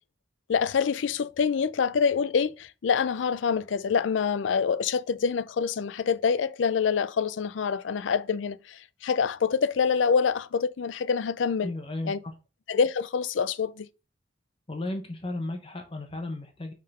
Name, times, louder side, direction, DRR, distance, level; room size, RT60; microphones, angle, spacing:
voice 1, 0.5-11.7 12.0-12.2 12.7-13.9, left 6 dB, 90° left, 0.4 m, -26 dB
voice 2, 11.6-12.3 14.7-16.7, left 2 dB, 30° left, 0.9 m, -34 dB
5.6 x 3.8 x 5.3 m
head